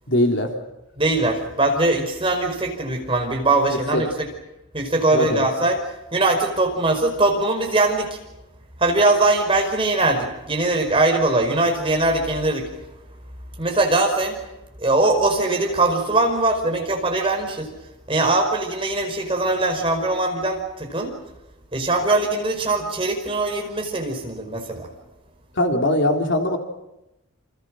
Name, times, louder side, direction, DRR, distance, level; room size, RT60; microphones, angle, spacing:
voice 1, 0.1-0.6 3.7-4.0 5.1-5.5 25.5-26.6, left 1 dB, 55° left, 3 dB, 3.5 m, -21 dB
voice 2, 1.0-4.3 4.7-5.8 6.1-8.2 8.8-12.7 13.6-14.4 14.8-17.7 18.1-21.1 21.7-24.9, right 2 dB, 25° right, 3 dB, 5.1 m, -21 dB
28.5 x 28.0 x 6.4 m, 0.93 s
head